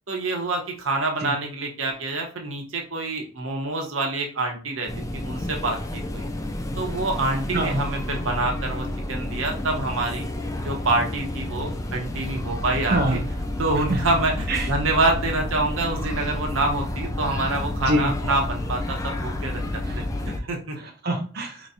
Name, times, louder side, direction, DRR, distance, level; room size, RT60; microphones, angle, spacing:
voice 1, 0.1-6.3 6.8-10.3 10.6-13.2 13.6-20.8, right 2 dB, 80° right, 1 dB, 1.0 m, -27 dB
sound 1, 4.9-20.4, left 1 dB, 15° left, 0.3 m, -30 dB
voice 2, 20.8-21.7, right 1 dB, 50° right, 1 dB, 0.5 m, -25 dB
4.5 x 3.0 x 2.6 m, 0.39 s
head